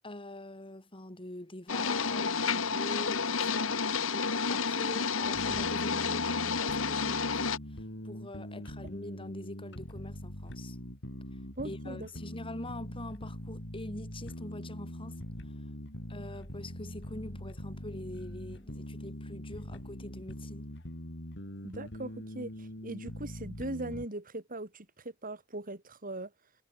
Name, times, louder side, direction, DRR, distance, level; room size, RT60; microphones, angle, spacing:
voice 1, 0.0-3.8 4.1-7.4 7.7-10.8 11.6-15.2 16.1-20.7, left 1 dB, 25° left, 3.2 m, -44 dB
sound 1, 1.7-7.6, left 5 dB, 80° left, 1.8 m, -30 dB
sound 2, 5.3-24.1, equal, 60° left, 5.9 m, -43 dB
voice 2, 11.6-12.1 21.6-26.3, right 2 dB, 45° right, 4.1 m, -40 dB
head